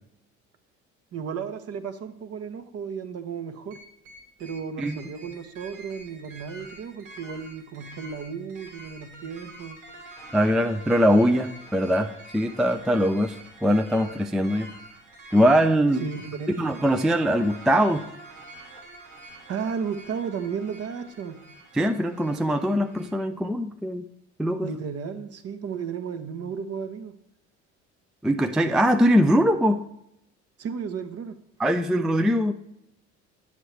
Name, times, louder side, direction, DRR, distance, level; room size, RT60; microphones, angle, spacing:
voice 1, 1.1-3.8 4.4-9.8 16.0-16.6 19.5-21.4 24.6-27.1 30.6-31.3, right 6 dB, 45° right, 9 dB, 0.9 m, -34 dB
sound 1, 3.7-23.1, right 2 dB, 85° right, 1.8 m, -47 dB
voice 2, 10.3-14.7 15.3-16.0 16.6-18.1 21.7-24.1 24.4-24.7 28.2-29.8 31.6-32.5, equal, ahead, 6 dB, 0.3 m, -22 dB
8.4 x 6.7 x 3.2 m, 0.77 s
hypercardioid pair, 65°, 35 cm